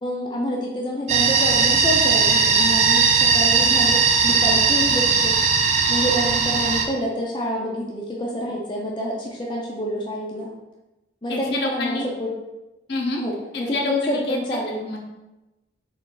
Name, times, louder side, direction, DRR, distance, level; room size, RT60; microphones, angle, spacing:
voice 1, 0.0-5.4 5.9-10.5 11.2-12.3 13.2-14.8, equal, 25° left, -3 dB, 0.5 m, -27 dB
sound 1, 1.1-6.9, right 5 dB, 35° right, 0.4 m, -18 dB
voice 2, 11.3-12.1 12.9-13.2 13.7-14.4 14.8-15.0, left 2 dB, 65° left, 0 dB, 0.7 m, -27 dB
3.7 x 3.2 x 3.8 m, 1.0 s
head